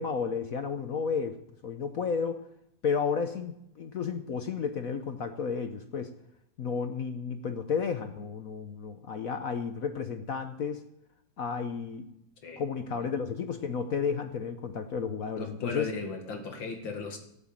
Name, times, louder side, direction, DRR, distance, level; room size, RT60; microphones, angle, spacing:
voice 1, 0.0-1.4 1.6-2.4 2.8-6.1 6.6-10.8 11.4-12.1 12.6-15.9, left 6 dB, 55° left, 8 dB, 1.1 m, -32 dB
voice 2, 15.3-17.2, left 3 dB, 85° left, 5 dB, 2.7 m, -37 dB
14.0 x 9.1 x 7.5 m, 0.78 s
omnidirectional pair, 2.0 m